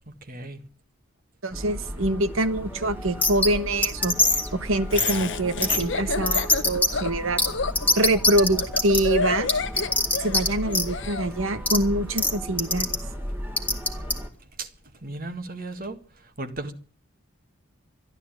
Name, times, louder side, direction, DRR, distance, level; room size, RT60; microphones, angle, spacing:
voice 1, 0.1-0.6 14.6-14.7 15.0-16.0 16.4-16.7, right 2 dB, 40° right, 1.7 m, -35 dB
voice 2, 1.4-7.4 7.9-9.5 10.2-12.9, right 1 dB, 70° right, 1.3 m, -25 dB
sound 1, 1.5-14.3, equal, 10° right, 1.9 m, -35 dB
sound 2, 3.2-3.5 3.8-4.5 5.0-5.2 5.6-5.8 6.3-6.9 7.4-7.5 7.7-9.0 9.5-10.5 10.7-10.8 11.7-11.8 12.2-12.3 12.6-13.0 13.6-14.1, left 2 dB, 5° left, 1.9 m, -21 dB
Laughter, 4.9-11.3, left 4 dB, 60° left, 0.9 m, -30 dB
14.0 x 12.0 x 8.8 m
head